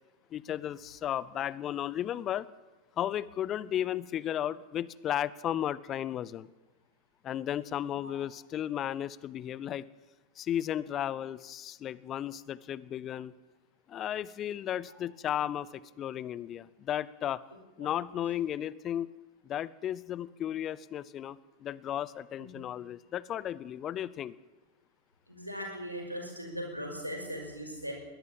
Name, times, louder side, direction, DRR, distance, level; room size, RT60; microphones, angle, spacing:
voice 1, 0.3-2.5 3.0-6.5 7.2-9.8 10.4-13.3 13.9-17.4 17.8-19.1 19.4-24.4, left 11 dB, 30° left, 20 dB, 0.7 m, -34 dB
voice 2, 25.3-27.9, equal, 90° right, 2 dB, 5.6 m, -39 dB
22.0 x 17.5 x 7.2 m, 1.2 s
figure-of-eight pair, 90°, 0 cm